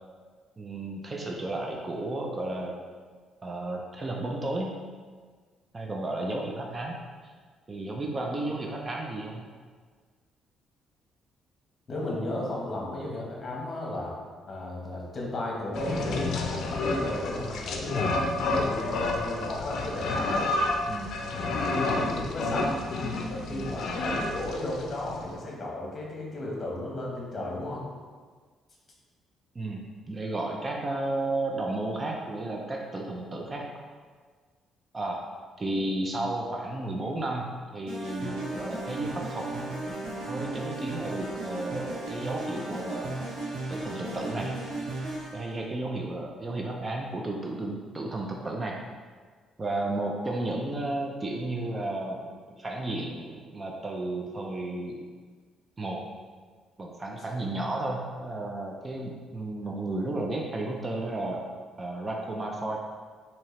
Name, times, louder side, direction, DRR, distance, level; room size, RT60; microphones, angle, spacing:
voice 1, 0.6-2.8 3.4-4.8 5.7-7.0 7.7-9.5 18.8-19.0 20.8-21.2 23.5-23.8 29.5-33.8 34.9-35.3 35.6-39.8 40.3-43.2 43.7-44.5 45.3-48.8 49.6-52.3 52.6-55.0 55.8-56.0 56.8-61.4 61.8-62.8, right 2 dB, 30° right, 0 dB, 0.5 m, -33 dB
voice 2, 11.9-14.1 14.5-20.5 21.6-22.7 23.3-27.9, left 1 dB, 35° left, -3 dB, 1.1 m, -34 dB
sound 1, 15.7-25.2, left 2 dB, 70° left, 0.4 m, -30 dB
sound 2, 37.9-45.5, right 2 dB, 85° right, 1.3 m, -35 dB
4.4 x 2.8 x 3.1 m, 1.6 s
cardioid pair, 90°, 0 cm